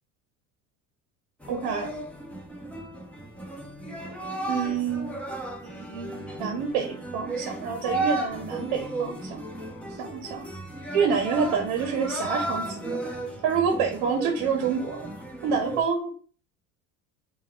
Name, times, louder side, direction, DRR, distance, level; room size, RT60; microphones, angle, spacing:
sound 1, 1.4-15.8, right 2 dB, 5° left, 0.7 m, -34 dB
voice 1, 1.5-1.9 4.5-5.1 5.6-9.4 10.0-10.5 10.9-13.0 13.4-15.1 15.4-16.1, right 6 dB, 70° right, 3 dB, 0.8 m, -27 dB
4.7 x 2.3 x 2.3 m, 0.41 s
supercardioid pair, 100°, 35 cm